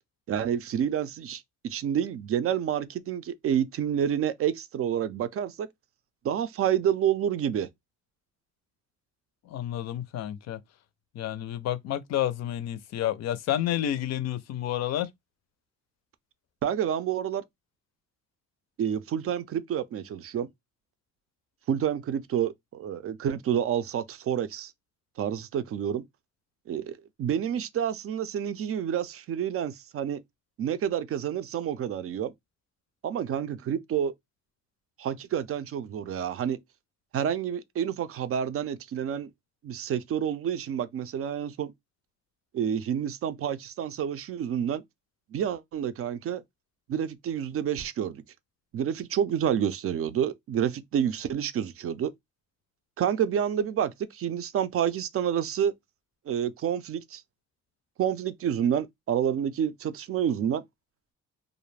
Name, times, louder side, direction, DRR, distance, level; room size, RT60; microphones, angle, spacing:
voice 1, 0.3-5.7 6.2-7.7 16.6-17.4 18.8-20.5 21.7-24.7 25.2-26.0 26.7-30.2 30.6-32.3 33.0-34.1 35.0-36.6 37.1-39.3 39.6-41.7 42.5-44.8 45.3-46.4 46.9-48.2 48.7-52.1 53.0-55.7 56.3-57.2 58.0-60.6, right 9 dB, 50° right, 0.4 m, -29 dB
voice 2, 9.5-10.6 11.1-15.1, left 11 dB, 60° left, 0.4 m, -30 dB
2.4 x 2.0 x 3.1 m
cardioid pair, 90°, 30 cm